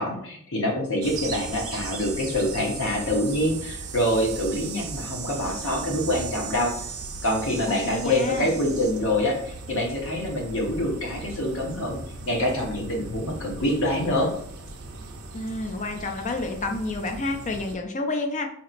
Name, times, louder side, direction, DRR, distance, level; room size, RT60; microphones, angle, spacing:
voice 1, 0.0-6.7 7.2-12.0 12.2-14.3, left 1 dB, 65° left, 0 dB, 1.0 m, -25 dB
sound 1, 1.0-17.8, right 4 dB, 75° right, 0.6 m, -37 dB
voice 2, 7.7-8.5 15.3-18.5, left 2 dB, 35° left, 5 dB, 0.4 m, -29 dB
4.2 x 2.9 x 2.5 m, 0.66 s
head